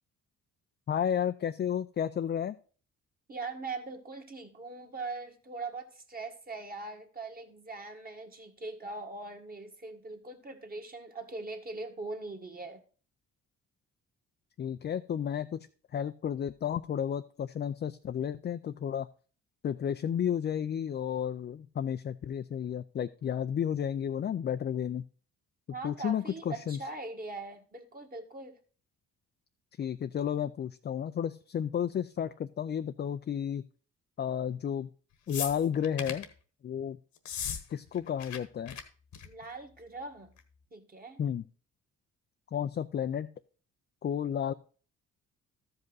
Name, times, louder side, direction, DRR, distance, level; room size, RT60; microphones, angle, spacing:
voice 1, 0.9-2.6 14.6-15.7 15.9-19.1 19.6-25.0 25.8-26.8 29.8-33.6 34.2-34.9 35.3-36.3 36.6-37.0 37.7-38.8 41.2-41.4 42.5-43.3 44.0-44.5, left 9 dB, 35° left, 9 dB, 0.4 m, -32 dB
voice 2, 3.3-12.8 25.7-28.6 39.2-40.3 40.7-41.2, right 3 dB, 30° right, 4 dB, 1.6 m, -41 dB
sound 1, 35.3-36.3 37.2-37.6 37.9-38.4 38.7-38.8 39.1-39.4 40.4-40.5, left 8 dB, 70° left, 1.3 m, -37 dB
13.5 x 5.3 x 4.0 m, 0.40 s
cardioid pair, 90°, 30 cm